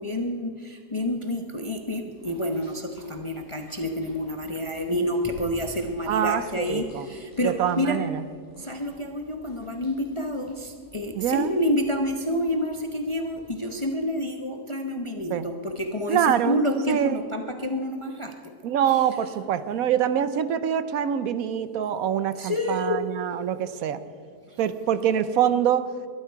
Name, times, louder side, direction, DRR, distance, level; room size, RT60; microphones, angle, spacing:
voice 1, 0.0-8.0 8.6-18.3 22.4-23.0, left 1 dB, 25° left, 4 dB, 0.7 m, -28 dB
sound 1, 2.1-13.8, left 1 dB, 10° left, 5.4 m, -50 dB
voice 2, 6.1-7.1 7.4-8.2 11.1-11.5 15.3-15.5 16.1-16.6 16.9-17.2 18.6-24.0 24.6-25.9, right 9 dB, 65° right, 13 dB, 1.1 m, -25 dB
22.0 x 12.0 x 4.7 m, 2.2 s
omnidirectional pair, 1.7 m